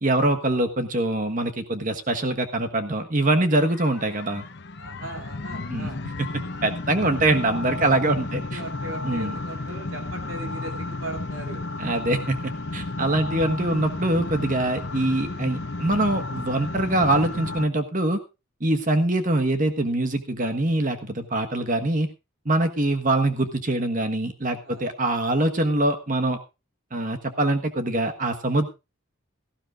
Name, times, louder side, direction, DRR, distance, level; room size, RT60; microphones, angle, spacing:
voice 1, 0.0-4.5 5.7-5.9 6.2-8.6 9.0-9.4 11.8-18.2 18.6-22.1 22.4-26.4 26.9-28.7, right 2 dB, 35° right, 7 dB, 1.4 m, -24 dB
sound 1, 3.6-17.7, left 2 dB, 50° left, 0.9 m, -33 dB
voice 2, 4.8-6.0 7.9-8.0 8.3-11.6 24.6-24.9, right 2 dB, 60° right, 3 dB, 3.0 m, -38 dB
17.5 x 14.5 x 2.5 m, 0.27 s
head